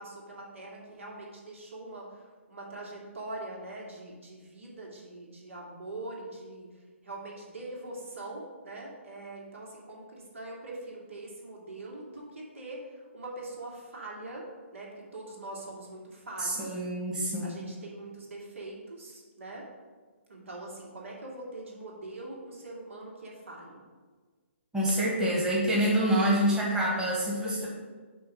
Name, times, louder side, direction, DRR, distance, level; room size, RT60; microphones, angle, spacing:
voice 1, 0.0-16.8 17.4-19.7 20.3-23.8, right 2 dB, 75° right, -2 dB, 2.5 m, -43 dB
voice 2, 16.4-17.7 24.7-27.7, right 1 dB, 10° right, -5 dB, 1.5 m, -27 dB
9.2 x 3.2 x 6.2 m, 1.4 s
hypercardioid pair, 150°, 7 cm